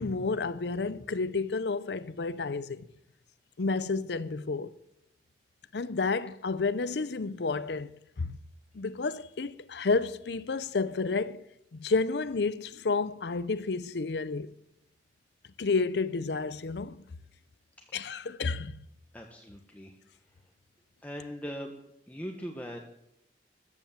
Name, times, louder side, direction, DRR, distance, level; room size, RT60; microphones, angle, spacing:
voice 1, 0.0-2.9 3.6-4.7 5.7-7.9 8.2-8.3 8.7-11.4 11.7-14.5 15.6-17.0 17.9-18.7, left 4 dB, 65° left, 0.6 m, -30 dB
voice 2, 19.1-20.0 21.0-21.7 22.1-22.8, equal, 10° left, 1.4 m, -40 dB
14.5 x 12.0 x 7.3 m
head